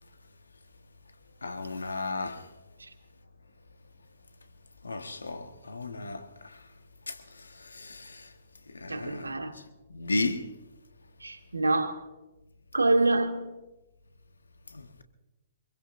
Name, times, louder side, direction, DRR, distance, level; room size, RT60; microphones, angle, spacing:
voice 1, 1.4-2.5 4.8-6.6 7.1-8.3 8.7-9.4 9.9-10.5 14.7-15.0, left 3 dB, 80° left, 1.4 m, -35 dB
voice 2, 8.9-9.6 11.2-12.0 12.7-13.6, right 2 dB, 80° right, 1.6 m, -26 dB
24.5 x 22.5 x 2.6 m
figure-of-eight pair, 120°, 0 cm